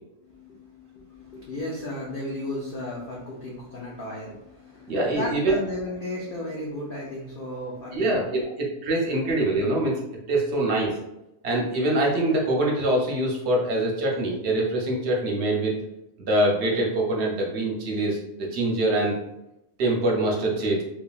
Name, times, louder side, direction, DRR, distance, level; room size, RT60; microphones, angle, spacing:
voice 1, 0.2-8.5, left 1 dB, 85° left, -4 dB, 0.4 m, -35 dB
voice 2, 4.9-5.5 7.9-9.9 10.3-10.9 11.4-15.7 16.2-18.2 18.5-19.1 19.8-20.8, right 1 dB, 60° right, -1 dB, 0.7 m, -24 dB
3.1 x 2.3 x 2.3 m, 0.86 s
omnidirectional pair, 1.6 m